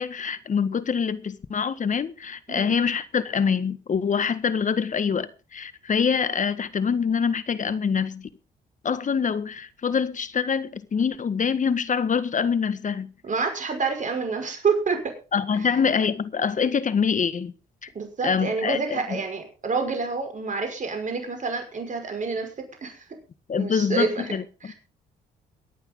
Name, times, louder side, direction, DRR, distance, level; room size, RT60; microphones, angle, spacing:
voice 1, 0.0-8.3 8.8-13.1 15.3-17.5 18.2-19.2 23.5-24.7, left 6 dB, 40° left, 1.6 m, -25 dB
voice 2, 2.5-2.8 13.2-15.2 17.9-23.0 23.5-24.3 24.6-24.7, right 4 dB, 40° right, 5.7 m, -28 dB
23.0 x 9.0 x 3.9 m
hypercardioid pair, 55°, 19 cm